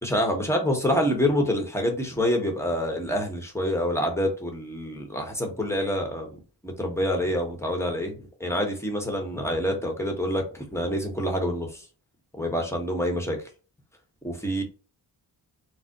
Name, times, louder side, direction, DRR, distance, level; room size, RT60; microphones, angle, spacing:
voice 1, 0.0-8.1 8.4-11.8 12.4-13.4 14.2-14.6, equal, 5° left, 2 dB, 1.2 m, -27 dB
4.0 x 2.1 x 2.9 m, 0.35 s
cardioid pair, 60°, 42 cm